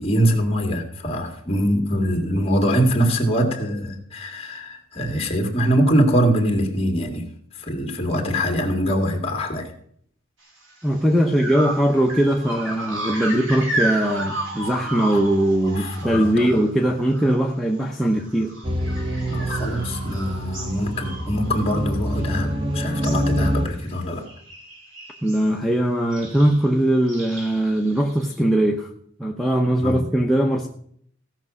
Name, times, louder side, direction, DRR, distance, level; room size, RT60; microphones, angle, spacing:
voice 1, 0.0-7.3 7.5-9.7 15.1-15.2 15.8-16.6 19.3-24.3 29.8-30.0, equal, 30° left, 2.0 m, -23 dB
sound 1, 10.7-10.9 11.3-17.5 17.7-22.6 22.8-23.4 23.7-23.9 24.2-25.5 26.1-26.6 27.1-28.4, right 1 dB, 70° right, 3.2 m, -33 dB
voice 2, 10.8-18.5 25.2-28.9 29.2-30.7, right 1 dB, ahead, 0.7 m, -20 dB
sound 2, 18.6-23.7, equal, 25° right, 1.0 m, -26 dB
16.0 x 6.0 x 6.1 m
head